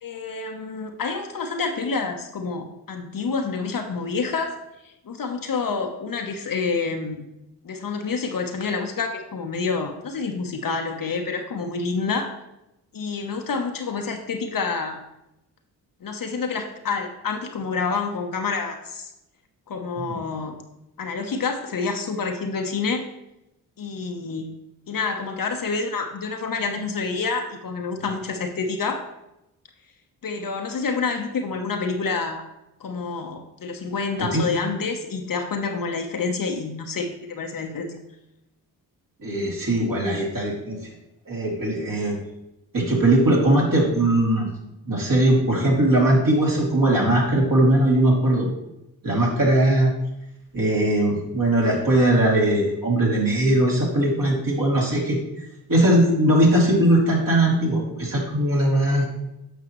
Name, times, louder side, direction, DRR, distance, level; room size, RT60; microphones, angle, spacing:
voice 1, 0.0-4.5 4.8-7.3 7.6-12.3 12.9-15.0 16.0-19.1 19.7-20.6 21.0-23.0 23.8-24.5 24.9-29.1 30.2-32.4 32.8-38.0, left 4 dB, 45° left, 4 dB, 1.0 m, -28 dB
voice 2, 39.2-40.8 41.3-42.2 42.7-44.5 44.8-48.5 49.0-49.9 50.5-55.2 55.7-59.0, right 1 dB, 45° right, -3 dB, 2.8 m, -20 dB
8.1 x 5.7 x 3.1 m, 0.88 s
hypercardioid pair, 40°, 48 cm